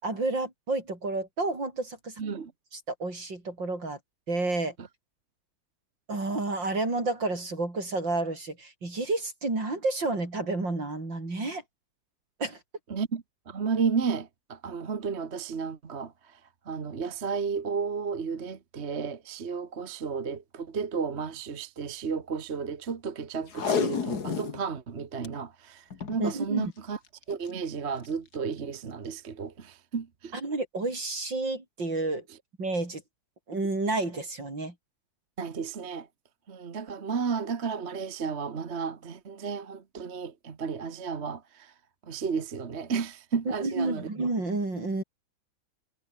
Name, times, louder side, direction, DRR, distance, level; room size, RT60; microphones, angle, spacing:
voice 1, 0.0-2.1 2.7-4.0 4.3-4.7 6.1-11.6 12.4-12.6 26.2-26.7 30.3-32.2 32.6-33.0 33.5-34.7 43.5-45.0, right 2 dB, 65° right, 7.0 m, -30 dB
voice 2, 2.2-2.5 4.8-4.9 12.9-16.1 16.7-27.0 27.3-30.3 35.4-36.1 36.5-41.7 42.1-44.1, right 5 dB, 35° right, 1.5 m, -33 dB
Packing tape duct tape, 23.5-24.6 25.0-25.1 25.2-25.3 25.9-26.2 27.2-27.5 28.1-28.2, left 6 dB, 55° left, 2.5 m, -29 dB
omnidirectional pair, 2.1 m